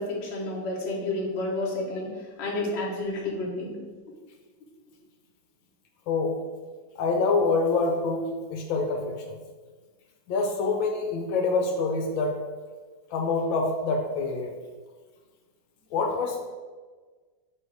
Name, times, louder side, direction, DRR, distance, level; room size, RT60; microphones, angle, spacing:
voice 1, 0.0-3.8, left 2 dB, 40° left, -3 dB, 1.2 m, -30 dB
voice 2, 6.1-6.4 7.0-9.4 10.3-12.3 13.1-14.5 15.9-16.5, left 3 dB, 80° left, 2 dB, 1.4 m, -26 dB
7.3 x 2.7 x 4.7 m, 1.4 s
omnidirectional pair, 2.2 m